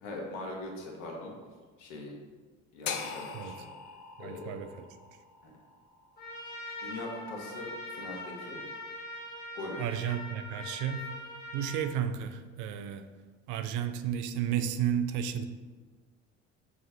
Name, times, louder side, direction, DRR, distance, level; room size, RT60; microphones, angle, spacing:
voice 1, 0.0-1.3 1.8-2.1 2.7-3.7 4.2-4.6 5.4-5.5 6.8-8.6 9.5-9.8, left 2 dB, 70° left, 0 dB, 1.0 m, -41 dB
sound 1, 2.9-7.0, left 6 dB, 50° left, 0.5 m, -41 dB
voice 2, 4.2-4.9 9.8-11.1 11.5-13.1 13.5-15.4, right 9 dB, 55° right, 9 dB, 0.4 m, -32 dB
Trumpet, 6.2-11.9, left 1 dB, 25° left, 1.2 m, -42 dB
5.9 x 2.4 x 2.6 m, 1.4 s
hypercardioid pair, 60°, 36 cm